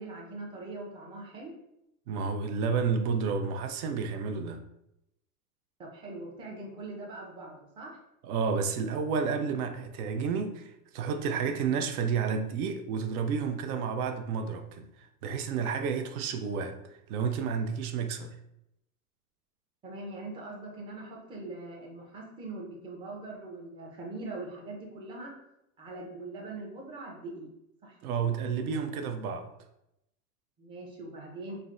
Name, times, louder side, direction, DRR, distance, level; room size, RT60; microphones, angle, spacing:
voice 1, 0.0-1.5 5.8-8.0 19.8-25.3 25.8-27.5 27.8-28.2 30.6-31.6, right 2 dB, 10° right, 0.4 m, -42 dB
voice 2, 2.1-4.6 8.2-18.4 28.0-29.5, right 6 dB, 70° right, 0.5 m, -31 dB
3.2 x 2.0 x 2.5 m
hypercardioid pair, 115°, 45 cm